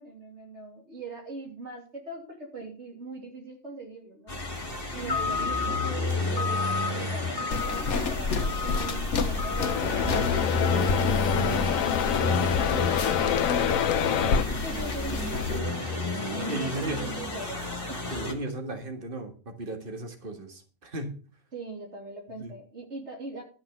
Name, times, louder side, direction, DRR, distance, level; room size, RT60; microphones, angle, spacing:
voice 1, 0.0-4.4 4.9-13.4 14.4-15.4 15.9-16.0 16.3-17.6 17.9-18.0 21.5-23.4, right 2 dB, 55° right, 1 dB, 3.4 m, -41 dB
sound 1, 4.3-18.3, left 3 dB, 40° left, 2.6 m, -30 dB
voice 2, 5.0-5.4 14.0-15.9 16.5-17.1 18.1-21.2 22.4-22.5, right 2 dB, 40° right, 4 dB, 2.1 m, -36 dB
sound 2, 7.5-15.6, left 4 dB, 60° left, 1.4 m, -31 dB
sound 3, 9.6-14.4, left 9 dB, 85° left, 1.2 m, -27 dB
12.5 x 5.9 x 7.0 m, 0.39 s
omnidirectional pair, 1.4 m